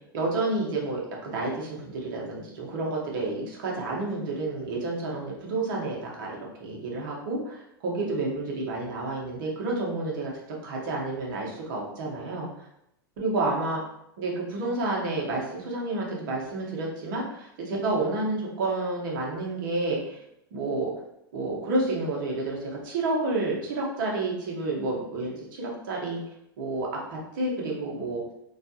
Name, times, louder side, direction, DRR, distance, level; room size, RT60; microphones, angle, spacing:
voice 1, 0.1-10.3 10.6-12.7 13.2-13.8 14.2-20.2 20.5-20.9 21.3-26.2 26.6-28.2, right 2 dB, 60° right, -2 dB, 1.0 m, -30 dB
3.2 x 2.3 x 2.7 m, 0.79 s
hypercardioid pair, 100°, 12 cm